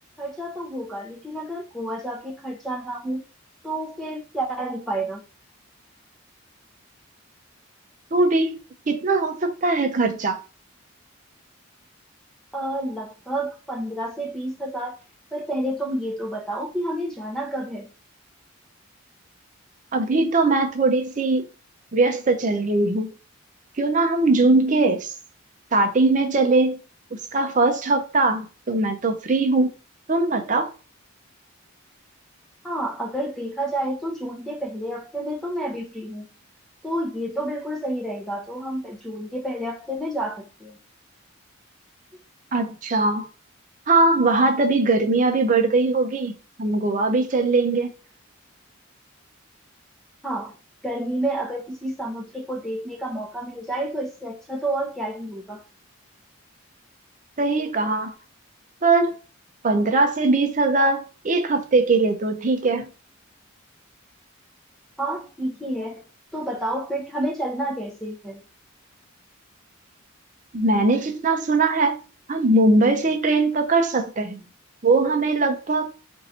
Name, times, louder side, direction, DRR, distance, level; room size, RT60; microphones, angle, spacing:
voice 1, 0.2-3.2 3.6-5.2 12.5-15.0 15.3-17.9 32.6-36.3 36.8-40.8 50.2-50.5 50.8-55.6 65.0-66.1 66.3-68.4, right 1 dB, ahead, 0.7 m, -30 dB
voice 2, 8.1-8.6 8.9-10.4 19.9-21.4 21.9-23.1 23.8-25.1 25.7-26.8 27.1-29.7 30.1-30.7 42.5-43.3 43.9-46.3 46.6-47.9 57.4-58.1 58.8-59.1 59.6-62.9 70.5-72.0 72.3-74.4 74.8-75.9, right 3 dB, 35° right, 0.6 m, -20 dB
4.6 x 2.6 x 4.2 m
head